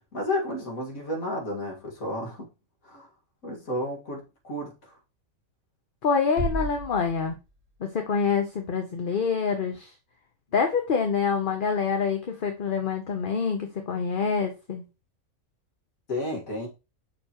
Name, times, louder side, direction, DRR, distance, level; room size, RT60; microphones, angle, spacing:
voice 1, 0.1-2.5 2.9-3.1 3.4-4.7 16.1-16.7, left 1 dB, 80° left, 2.4 m, -31 dB
voice 2, 6.0-7.3 7.8-9.9 10.5-14.8, left 5 dB, 45° left, 1.0 m, -26 dB
sound 1, 6.4-8.0, right 2 dB, 55° right, 1.7 m, -33 dB
6.6 x 5.9 x 3.0 m
omnidirectional pair, 1.4 m